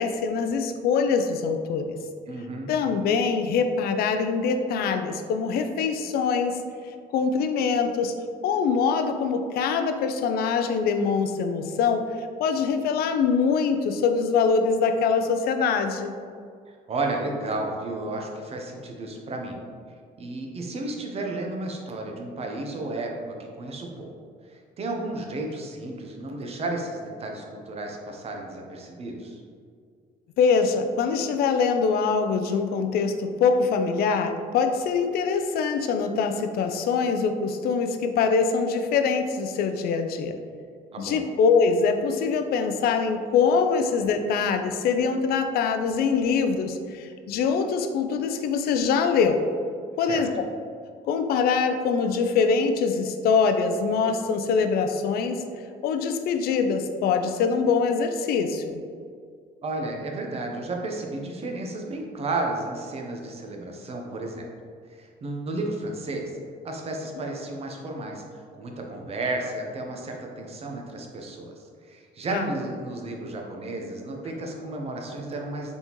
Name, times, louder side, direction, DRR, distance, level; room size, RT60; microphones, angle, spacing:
voice 1, 0.0-1.9 2.7-6.6 7.1-8.1 8.4-16.1 30.4-40.4 41.0-49.4 50.0-50.3 51.1-55.4 55.8-58.8 72.3-72.5, left 5 dB, 65° left, 7 dB, 0.4 m, -24 dB
voice 2, 2.3-2.7 16.7-19.6 20.2-24.1 24.5-29.4 40.9-41.2 50.1-50.2 59.6-64.5 64.9-66.3 66.6-68.2 68.6-71.5 71.8-75.7, right 2 dB, 35° right, 1 dB, 0.7 m, -33 dB
4.1 x 3.5 x 3.0 m, 2.1 s
cardioid pair, 110°, 17 cm